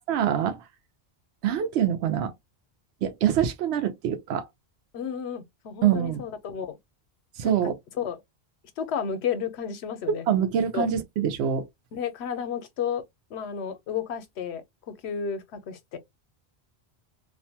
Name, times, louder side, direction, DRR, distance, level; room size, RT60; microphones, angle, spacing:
voice 1, 0.1-0.6 1.4-2.3 3.0-4.5 5.8-6.2 7.4-7.8 10.3-11.7, right 9 dB, 85° right, 0.9 m, -25 dB
voice 2, 4.9-6.8 7.4-8.2 8.8-10.2 10.7-10.9 11.9-13.0 13.3-14.6 15.0-16.0, left 7 dB, 80° left, 0.9 m, -32 dB
2.5 x 2.2 x 2.7 m
omnidirectional pair, 1.1 m